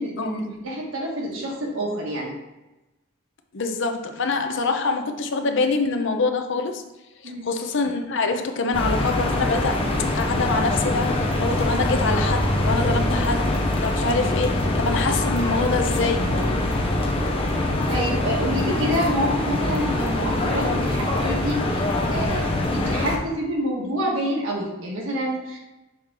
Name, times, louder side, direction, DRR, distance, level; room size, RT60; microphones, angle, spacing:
voice 1, 0.0-2.3 7.2-7.5 17.9-21.6 22.1-25.6, equal, 75° right, -2 dB, 1.8 m, -27 dB
voice 2, 3.5-6.8 7.2-9.8 10.1-16.3, left 3 dB, 65° left, 6 dB, 0.7 m, -25 dB
sound 1, 8.7-23.2, left 1 dB, 30° left, 0.8 m, -23 dB
6.4 x 4.2 x 3.8 m, 1.0 s
head